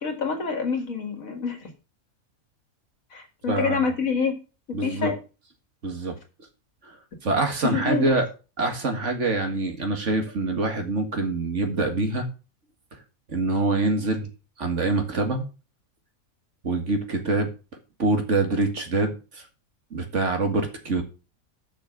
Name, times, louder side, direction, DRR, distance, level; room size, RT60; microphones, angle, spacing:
voice 1, 0.0-1.7 3.1-4.4 4.8-5.1 7.6-8.1, left 5 dB, 70° left, 4 dB, 2.3 m, -26 dB
voice 2, 3.5-3.9 4.7-5.1 5.8-6.2 7.2-8.2 8.6-12.3 13.3-14.3 14.6-15.5 16.6-17.5 18.0-19.4 19.9-21.0, right 2 dB, 55° right, 4 dB, 2.2 m, -25 dB
6.7 x 6.0 x 7.1 m, 0.32 s
omnidirectional pair, 1.5 m